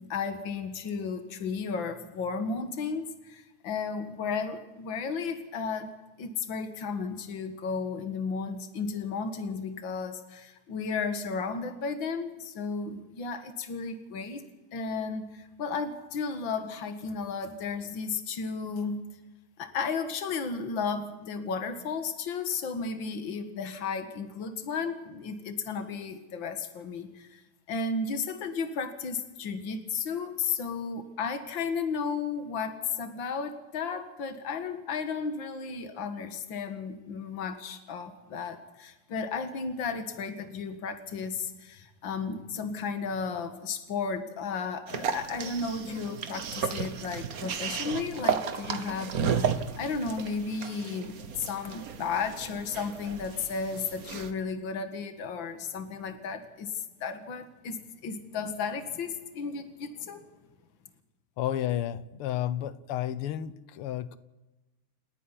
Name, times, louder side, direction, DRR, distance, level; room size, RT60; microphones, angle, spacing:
voice 1, 0.0-5.9 6.2-14.4 14.7-19.0 19.6-27.4 27.7-56.7 57.0-60.2, left 5 dB, 60° left, 8 dB, 2.4 m, -34 dB
sound 1, 44.9-54.3, right 6 dB, 50° right, 1.4 m, -34 dB
voice 2, 61.4-64.2, left 11 dB, 85° left, 16 dB, 1.8 m, -31 dB
29.0 x 9.9 x 10.0 m, 1.1 s
omnidirectional pair, 2.4 m